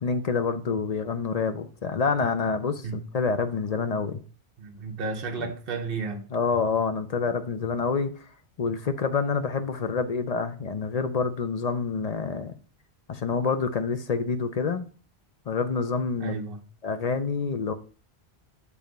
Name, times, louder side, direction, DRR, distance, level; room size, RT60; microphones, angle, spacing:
voice 1, 0.0-4.2 5.4-5.5 6.3-8.1 8.6-12.5 13.1-14.9 15.5-16.4 16.8-17.7, left 5 dB, 45° left, 0.6 m, -27 dB
voice 2, 4.6-6.2 16.2-16.6, right 4 dB, 60° right, 1.1 m, -33 dB
7.1 x 3.4 x 5.1 m
omnidirectional pair, 1.1 m